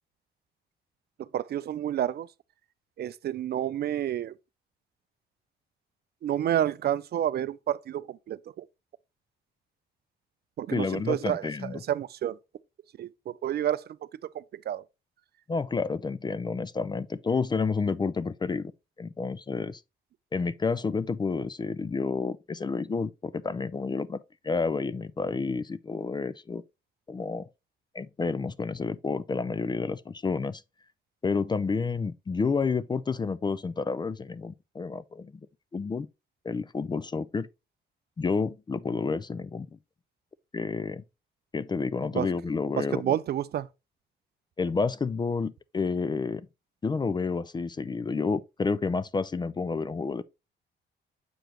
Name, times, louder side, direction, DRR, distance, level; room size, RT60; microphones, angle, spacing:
voice 1, 1.3-2.3 3.0-4.3 6.2-8.6 10.6-12.4 13.0-13.8 14.3-14.8 42.1-42.3 42.8-43.7, right 11 dB, 55° right, 0.4 m, -29 dB
voice 2, 10.7-11.8 15.5-18.7 19.0-19.8 20.3-26.6 27.1-27.5 27.9-30.6 31.2-35.3 35.7-36.1 36.4-37.5 38.2-39.7 40.5-41.0 41.5-43.2 44.6-46.5 46.8-50.2, left 4 dB, 20° left, 0.4 m, -30 dB
7.7 x 4.9 x 3.0 m
cardioid pair, 90°, 20 cm